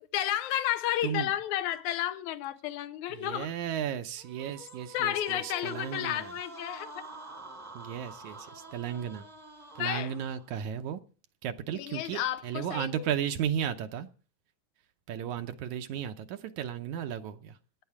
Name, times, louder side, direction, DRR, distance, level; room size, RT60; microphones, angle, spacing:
voice 1, 0.0-3.5 4.9-7.0 9.8-10.1 11.7-13.1, left 12 dB, 75° left, 2.3 m, -32 dB
voice 2, 3.1-6.3 7.7-9.3 9.8-11.0 11.4-14.1 15.1-17.6, right 9 dB, 75° right, 2.1 m, -34 dB
sound 1, 4.2-10.5, right 3 dB, 10° right, 1.1 m, -47 dB
16.0 x 10.5 x 4.8 m
omnidirectional pair, 3.5 m